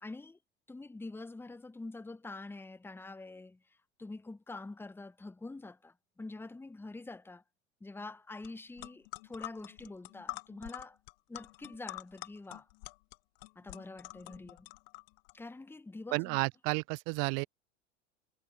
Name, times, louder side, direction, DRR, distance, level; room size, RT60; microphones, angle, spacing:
voice 1, 0.0-0.4 0.7-7.4 7.8-11.0 11.3-12.7 13.5-14.7 15.3-16.4, left 2 dB, 5° left, 1.1 m, -46 dB
sound 1, 8.4-8.5 8.8-15.3, left 28 dB, 55° left, 1.9 m, -46 dB
voice 2, 16.1-17.4, right 40 dB or more, 45° right, 0.6 m, -32 dB
figure-of-eight pair, 80°, 36 cm